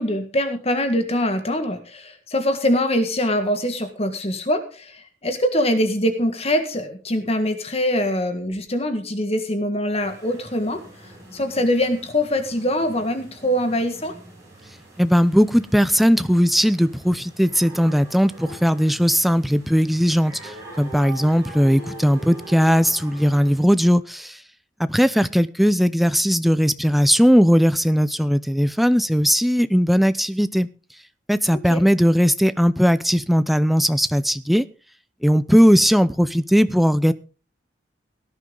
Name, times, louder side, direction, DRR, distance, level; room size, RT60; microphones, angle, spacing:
voice 1, 0.0-10.8 11.3-14.1 31.7-31.8, left 1 dB, 35° left, 7 dB, 1.7 m, -23 dB
sound 1, 10.0-23.6, right 1 dB, 15° right, 7.9 m, -43 dB
voice 2, 15.0-24.4 24.8-30.7 31.3-34.6 35.2-37.1, equal, ahead, 14 dB, 0.6 m, -18 dB
18.0 x 10.5 x 3.9 m, 0.34 s
head